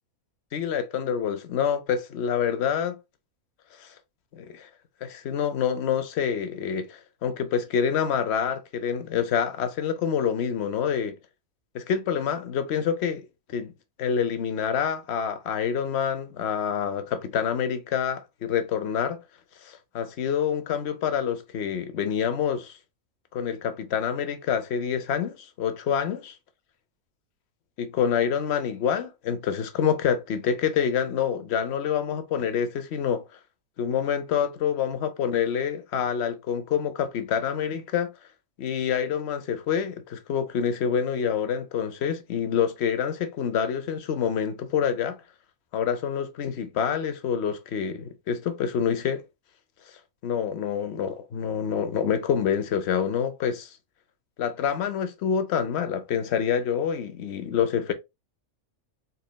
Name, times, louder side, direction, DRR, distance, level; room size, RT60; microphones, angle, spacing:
voice 1, 0.5-3.0 3.8-3.9 4.3-4.7 5.0-11.2 11.7-13.7 14.0-19.2 19.6-22.7 23.3-26.2 27.8-33.2 33.8-38.1 38.6-45.2 45.7-49.2 50.2-53.8 54.4-57.9, left 7 dB, 55° left, 0.9 m, -27 dB
4.3 x 4.0 x 2.2 m
omnidirectional pair, 1.5 m